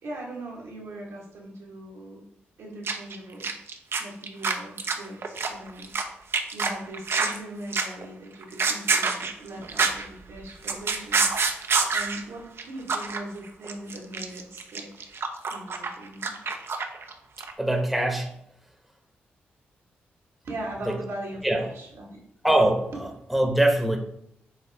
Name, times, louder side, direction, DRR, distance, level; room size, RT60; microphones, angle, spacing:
voice 1, 0.0-2.2 2.6-3.6 4.0-5.9 6.5-11.3 11.9-15.1 15.5-16.3 20.4-22.2, right 1 dB, 70° right, -3 dB, 1.4 m, -40 dB
sound 1, 2.9-3.2 3.4-6.0 6.3-7.4 7.7-8.1 8.4-10.1 10.4-12.2 12.6-12.7 12.9-13.2 13.5-17.1 17.4-17.5, right 4 dB, 55° right, 0.6 m, -26 dB
voice 2, 17.6-18.3 20.8-21.0 21.4-21.6 22.4-24.0, right 1 dB, ahead, 3 dB, 1.0 m, -23 dB
6.4 x 2.4 x 3.4 m, 0.73 s
hypercardioid pair, 45°, 5 cm